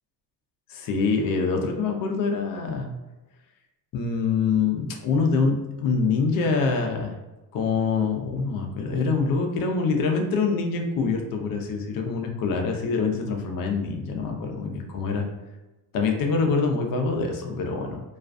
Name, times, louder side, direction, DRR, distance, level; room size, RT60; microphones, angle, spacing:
voice 1, 0.7-2.9 3.9-7.1 7.5-15.3 15.9-18.0, left 4 dB, 60° left, 2 dB, 0.6 m, -25 dB
2.4 x 2.2 x 2.4 m, 1.1 s
cardioid pair, 125°, 39 cm